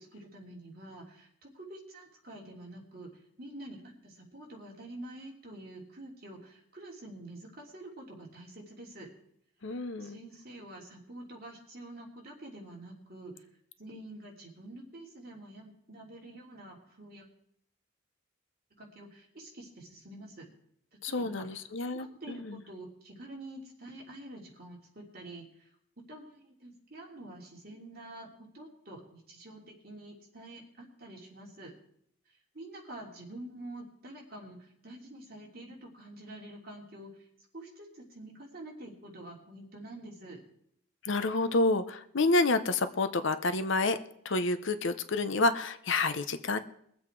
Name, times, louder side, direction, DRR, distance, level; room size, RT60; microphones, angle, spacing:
voice 1, 0.0-3.1 3.4-9.1 10.0-13.5 13.8-17.3 18.8-20.5 21.0-25.7 26.1-31.7 32.5-37.3 37.5-40.4, right 1 dB, 45° right, -2 dB, 3.2 m, -47 dB
voice 2, 9.6-10.2 21.0-22.4 41.1-44.0 44.2-46.6, left 2 dB, 60° left, 11 dB, 0.8 m, -29 dB
22.0 x 7.8 x 4.7 m, 0.69 s
head